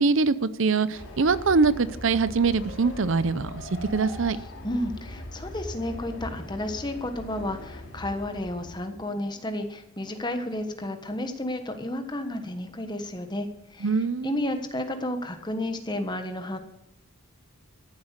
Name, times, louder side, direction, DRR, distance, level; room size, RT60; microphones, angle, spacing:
voice 1, 0.0-4.4 13.8-14.3, right 4 dB, 60° right, 0.6 m, -23 dB
Train, 0.9-9.1, left 1 dB, 60° left, 3.3 m, -40 dB
voice 2, 4.6-14.0 14.2-16.6, left 1 dB, 20° left, 1.2 m, -32 dB
14.0 x 7.8 x 7.3 m
head